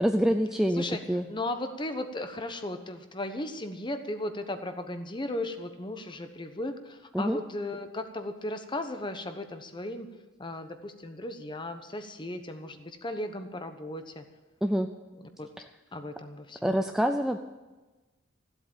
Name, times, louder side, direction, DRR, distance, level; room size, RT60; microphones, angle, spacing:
voice 1, 0.0-1.3 7.1-7.4 14.6-14.9 16.6-17.4, equal, ahead, 6 dB, 0.4 m, -26 dB
voice 2, 1.3-10.1 10.4-14.2 15.2-15.5 15.9-16.8, left 1 dB, 25° left, 8 dB, 1.0 m, -36 dB
15.5 x 8.0 x 8.9 m, 1.2 s
head